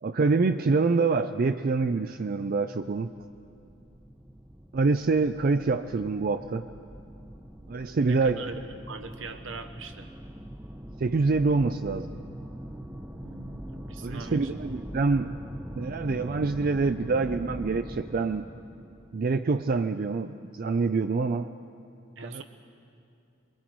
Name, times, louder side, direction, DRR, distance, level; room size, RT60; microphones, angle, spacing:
voice 1, 0.0-3.1 4.7-6.6 7.7-8.4 11.0-12.1 14.0-15.3 15.8-18.5 19.1-21.5 22.2-22.4, right 4 dB, 45° right, 9 dB, 0.4 m, -26 dB
sound 1, 3.2-19.8, equal, 10° right, 0.7 m, -42 dB
voice 2, 8.0-10.1 13.1-14.6 22.2-22.4, right 3 dB, 70° right, 7 dB, 1.2 m, -41 dB
27.5 x 22.0 x 4.6 m, 2.6 s
head